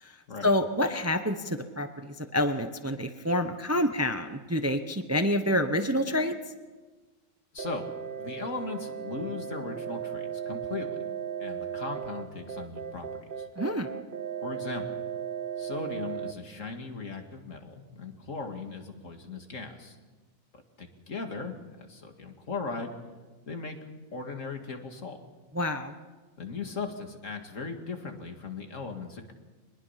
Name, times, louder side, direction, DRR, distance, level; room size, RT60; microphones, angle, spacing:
voice 1, 0.4-6.3 13.6-13.9 25.5-25.9, left 1 dB, 15° right, 7 dB, 0.8 m, -28 dB
sound 1, 7.6-16.3, right 8 dB, 45° right, 0.9 m, -36 dB
voice 2, 8.2-11.0 11.4-13.1 13.4-13.5 14.4-15.0 15.6-20.0 20.8-22.9 23.5-23.8 24.1-25.2 26.4-29.3, left 4 dB, 65° left, 4 dB, 2.4 m, -38 dB
24.0 x 20.5 x 5.8 m, 1.3 s
omnidirectional pair, 1.4 m